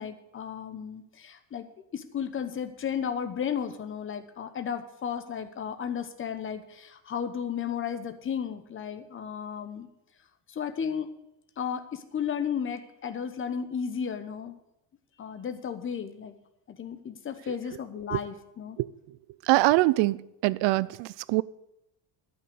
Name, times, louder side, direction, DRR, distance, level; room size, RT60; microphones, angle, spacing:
voice 1, 0.0-1.7 1.9-9.9 10.5-11.1 11.6-14.6 15.2-16.3 16.8-18.8, left 7 dB, 25° left, 9 dB, 1.0 m, -34 dB
voice 2, 19.5-20.2 20.4-21.4, right 19 dB, 60° right, 19 dB, 0.6 m, -23 dB
12.5 x 6.0 x 8.4 m, 0.84 s
cardioid pair, 150°, 50 cm